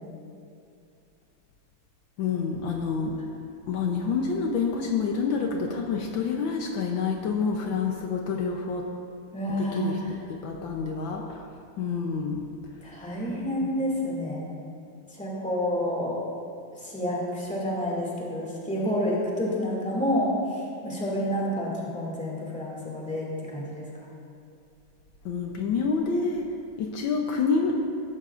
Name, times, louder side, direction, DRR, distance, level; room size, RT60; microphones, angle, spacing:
voice 1, 2.2-3.2 3.7-8.9 9.6-10.0 10.3-11.5 11.8-12.4 25.2-26.5 26.8-27.8, left 5 dB, 70° left, 1 dB, 1.5 m, -28 dB
voice 2, 9.3-10.2 12.8-14.5 15.1-16.2 16.8-23.9, equal, 5° left, -5 dB, 2.2 m, -29 dB
16.5 x 11.5 x 2.5 m, 2.5 s
omnidirectional pair, 2.2 m